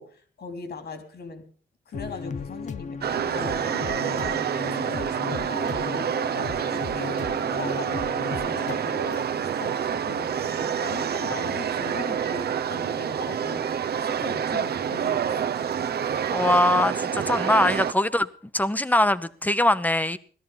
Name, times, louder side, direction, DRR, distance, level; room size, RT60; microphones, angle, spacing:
voice 1, 0.0-1.5 1.9-13.7 14.0-15.6, left 4 dB, 65° left, 8 dB, 3.6 m, -39 dB
sound 1, 1.9-8.7, left 5 dB, 40° left, 0.7 m, -36 dB
sound 2, 3.0-17.9, right 8 dB, 65° right, 0.9 m, -27 dB
voice 2, 16.3-18.3 18.5-20.2, left 1 dB, 10° left, 14 dB, 0.9 m, -22 dB
17.5 x 13.0 x 5.6 m, 0.43 s
cardioid pair, 110°, 18 cm